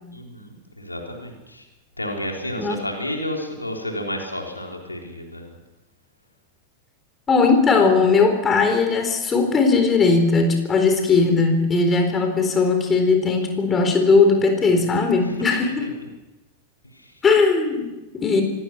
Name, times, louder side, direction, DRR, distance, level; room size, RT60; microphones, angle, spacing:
voice 1, 0.1-1.6 2.0-5.6 15.2-15.3 15.7-15.9 16.9-17.1, left 1 dB, 85° left, 2 dB, 3.5 m, -31 dB
voice 2, 7.3-15.9 17.2-18.4, left 4 dB, 20° left, 5 dB, 4.1 m, -18 dB
25.0 x 18.5 x 6.0 m, 0.99 s
figure-of-eight pair, 90°, 0 cm